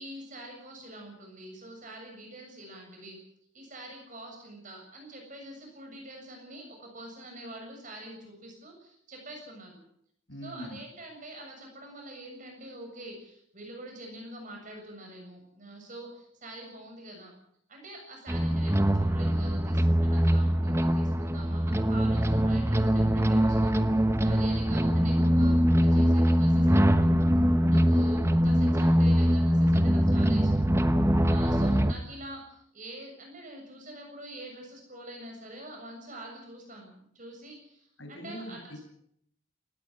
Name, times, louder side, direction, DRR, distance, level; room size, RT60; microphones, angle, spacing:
voice 1, 0.0-3.2 3.5-9.8 10.4-17.3 17.7-27.1 27.7-30.7 31.2-38.7, right 1 dB, 40° right, 2 dB, 7.2 m, -45 dB
voice 2, 10.3-10.8 27.7-28.1 38.0-38.9, equal, 70° left, 7 dB, 6.1 m, -42 dB
sound 1, 18.3-31.9, equal, 15° right, 1.1 m, -23 dB
19.5 x 16.5 x 9.3 m, 0.71 s
head